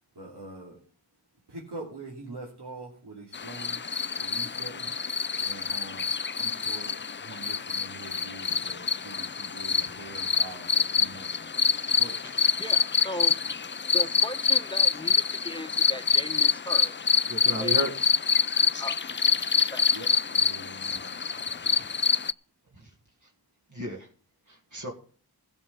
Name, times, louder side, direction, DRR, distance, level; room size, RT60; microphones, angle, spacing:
voice 1, 0.1-0.8 1.5-3.8 4.1-4.9 5.4-12.2 19.9-21.4, right 2 dB, 80° right, -4 dB, 3.0 m, -44 dB
sound 1, 3.3-22.3, left 6 dB, 30° left, 0.4 m, -26 dB
voice 2, 8.5-8.8 11.7-11.8 17.3-17.9 23.7-24.1 24.7-24.9, right 1 dB, 50° right, -1 dB, 2.0 m, -33 dB
voice 3, 12.6-13.5 13.9-17.0 17.6-17.8 18.8-19.0 19.5-19.9, left 1 dB, 10° left, 7 dB, 1.1 m, -37 dB
16.0 x 5.5 x 6.9 m, 0.43 s
cardioid pair, 45°, 40 cm